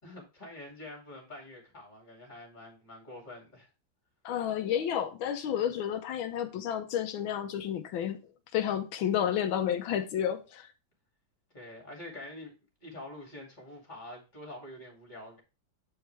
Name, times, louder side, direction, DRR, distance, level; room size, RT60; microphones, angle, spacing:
voice 1, 0.0-3.7 11.5-12.5 12.8-15.4, left 1 dB, 25° left, 2.5 m, -46 dB
voice 2, 4.2-8.2 8.5-10.7, left 9 dB, 90° left, 1.5 m, -31 dB
8.3 x 4.7 x 3.3 m
omnidirectional pair, 2.1 m